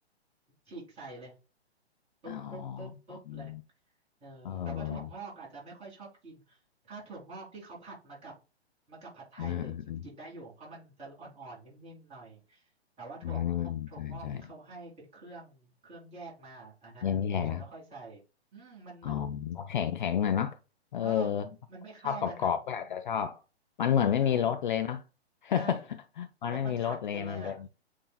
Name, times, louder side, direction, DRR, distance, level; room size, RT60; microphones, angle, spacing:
voice 1, 0.7-1.3 2.2-3.5 4.2-6.6 6.9-8.3 8.9-12.7 13.0-18.2 18.5-19.3 21.0-21.4 21.7-22.5 24.2-24.5 25.5-25.8 26.5-27.6, right 3 dB, 20° right, 2.6 m, -47 dB
voice 2, 2.3-3.6 4.4-5.1 9.4-10.0 13.2-14.4 17.0-17.6 19.0-20.6 20.9-21.5 22.0-23.4 23.8-25.0 25.4-27.7, left 9 dB, 50° left, 0.4 m, -31 dB
8.3 x 2.8 x 2.3 m
figure-of-eight pair, 125°, 33 cm